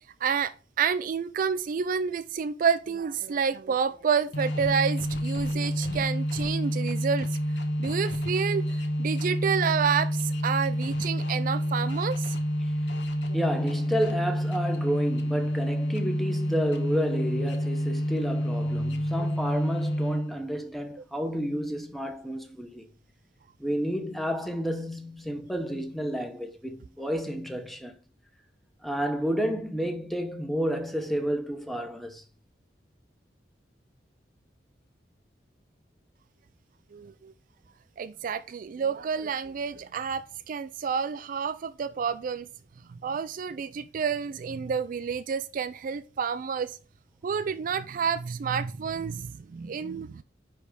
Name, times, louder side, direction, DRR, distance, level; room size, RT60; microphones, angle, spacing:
voice 1, 0.2-7.4 7.8-12.4 13.3-13.4 36.9-37.3 38.0-42.5 43.0-46.7 47.2-50.2, right 6 dB, 50° right, 0.3 m, -29 dB
sound 1, 4.3-20.5, equal, 70° left, 1.1 m, -28 dB
voice 2, 13.3-22.9 23.6-27.9 28.8-32.2, equal, ahead, 0.9 m, -30 dB
9.9 x 3.4 x 5.0 m
head